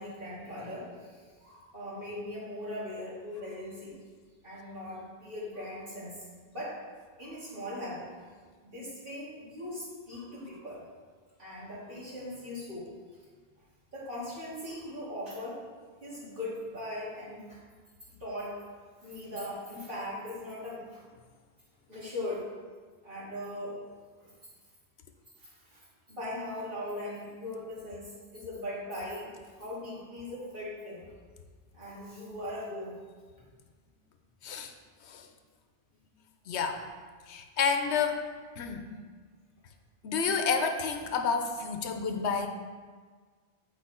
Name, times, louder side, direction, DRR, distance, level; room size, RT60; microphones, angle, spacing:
voice 1, 0.0-4.0 4.4-6.8 7.2-8.3 8.6-10.8 11.4-12.9 13.9-15.6 16.0-17.6 18.2-18.5 19.0-21.0 21.9-22.4 23.0-23.8 24.2-24.5 25.4-29.3 29.6-31.0 31.7-32.9 33.3-33.4, left 1 dB, 55° right, -8 dB, 2.7 m, -40 dB
voice 2, 36.5-36.8 37.3-38.2 38.6-38.8 40.0-42.5, left 5 dB, 85° left, 6 dB, 1.0 m, -30 dB
8.3 x 4.7 x 4.3 m, 1.5 s
omnidirectional pair, 1.1 m